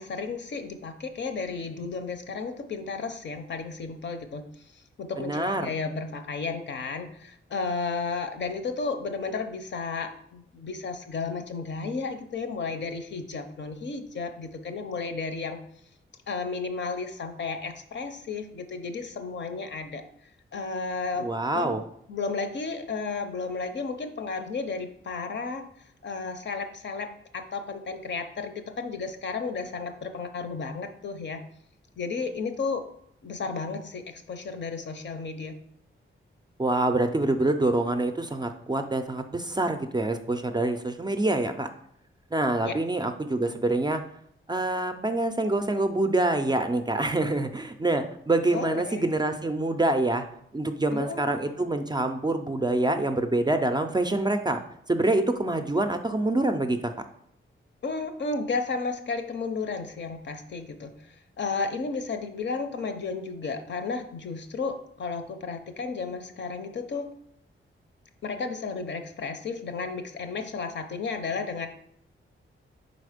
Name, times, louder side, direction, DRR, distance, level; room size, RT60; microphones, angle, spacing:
voice 1, 0.0-15.6 16.3-20.0 20.5-21.8 22.1-25.6 26.0-31.4 32.0-32.8 33.2-35.6 42.6-42.8 48.5-49.1 50.9-51.2 57.8-67.1 68.2-71.7, left 4 dB, 60° left, 7 dB, 0.6 m, -33 dB
voice 2, 5.2-5.7 21.2-21.8 36.6-41.7 42.3-44.0 44.5-50.2 50.5-54.6 54.9-56.9, right 2 dB, 20° right, 6 dB, 0.4 m, -26 dB
5.0 x 4.0 x 5.0 m, 0.69 s
wide cardioid pair, 155°, 21 cm